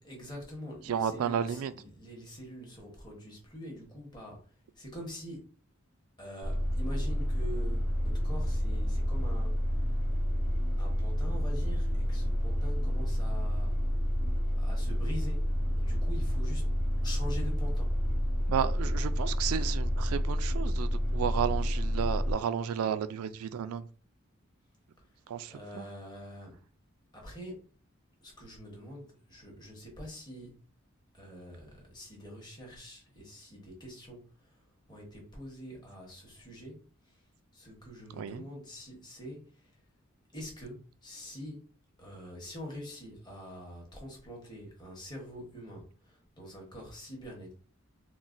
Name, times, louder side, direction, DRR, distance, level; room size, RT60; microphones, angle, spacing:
voice 1, 0.0-4.5 4.8-5.5 6.2-9.7 10.8-13.8 14.6-16.7 17.0-18.0 25.5-26.6 27.1-27.7 28.2-30.6 31.1-34.6 34.9-37.2 37.5-39.7 40.3-41.7 42.0-47.5, equal, 20° left, 1.0 m, -45 dB
voice 2, 0.9-1.7 18.5-23.8 25.3-25.9 38.2-38.4, right 8 dB, 85° right, 0.3 m, -32 dB
sound 1, 6.4-22.3, equal, 85° left, 0.9 m, -29 dB
3.9 x 2.1 x 2.5 m
head